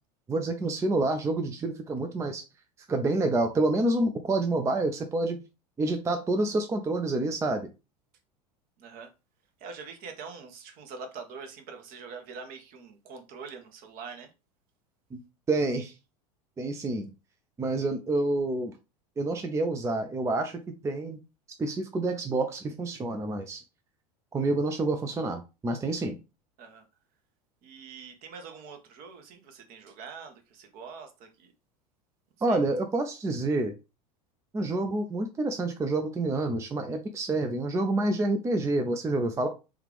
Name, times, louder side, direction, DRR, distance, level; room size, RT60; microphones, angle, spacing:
voice 1, 0.3-2.4 2.9-5.4 5.8-7.7 15.1-15.2 15.5-15.9 16.6-17.1 17.6-18.7 19.2-21.2 21.6-23.6 24.3-26.2 32.4-33.7 34.5-39.5, right 2 dB, 15° right, 0.4 m, -28 dB
voice 2, 8.8-9.1 9.6-14.3 26.6-26.8 27.6-31.5 32.5-32.6, right 5 dB, 45° right, 0.9 m, -44 dB
3.4 x 2.4 x 3.3 m
hypercardioid pair, 80°, 20 cm